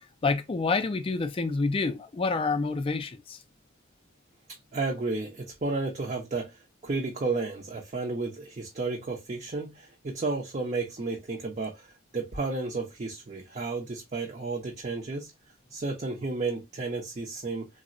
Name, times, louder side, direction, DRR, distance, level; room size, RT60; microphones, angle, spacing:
voice 1, 0.0-3.4, left 3 dB, 25° left, 0.3 m, -28 dB
voice 2, 4.7-6.5 6.8-15.3 15.7-17.7, right 3 dB, 35° right, 0.5 m, -32 dB
3.5 x 2.0 x 2.4 m
head